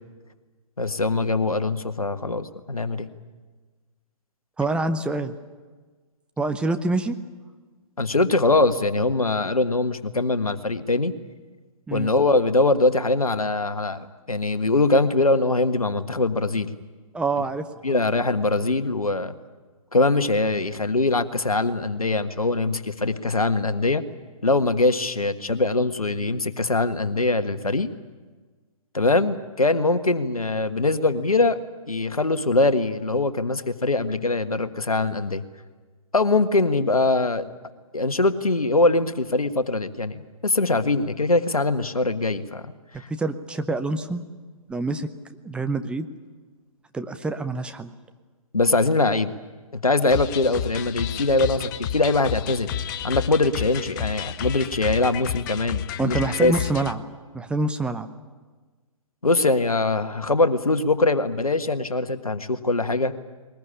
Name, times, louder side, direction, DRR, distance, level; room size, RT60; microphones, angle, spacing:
voice 1, 0.8-3.1 8.0-11.1 11.9-16.7 17.8-19.3 19.9-24.0 24.4-27.9 28.9-31.6 31.9-35.4 36.1-37.5 37.9-42.7 43.0-43.1 48.5-49.4 49.7-52.7 53.0-56.5 59.2-63.1, left 2 dB, 85° left, 11 dB, 1.5 m, -22 dB
voice 2, 4.6-5.3 6.4-7.2 11.9-12.1 17.1-18.0 43.1-44.2 44.7-45.1 45.4-46.1 46.9-47.9 56.0-57.0 57.3-58.1, right 3 dB, 5° right, 7 dB, 0.8 m, -26 dB
sound 1, 50.1-56.9, left 9 dB, 35° left, 1.0 m, -31 dB
21.5 x 20.5 x 9.9 m, 1.4 s
figure-of-eight pair, 130°, 18 cm